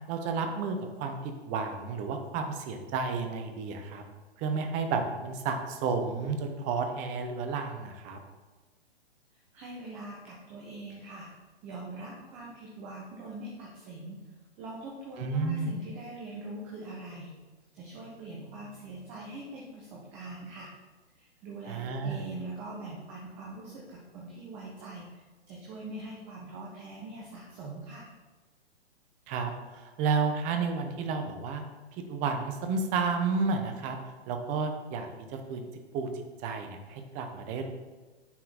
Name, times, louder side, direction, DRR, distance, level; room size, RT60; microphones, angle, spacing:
voice 1, 0.1-4.0 4.4-8.2 15.2-15.7 21.7-22.2 29.3-31.6 32.1-34.0 34.3-35.6 35.9-36.1 36.4-37.6, right 4 dB, 25° right, 5 dB, 0.8 m, -31 dB
voice 2, 9.5-11.3 11.6-14.2 14.6-17.3 17.7-20.7 21.1-28.1, right 2 dB, 5° right, -3 dB, 0.3 m, -43 dB
9.6 x 4.4 x 4.1 m, 1.2 s
figure-of-eight pair, 120°, 32 cm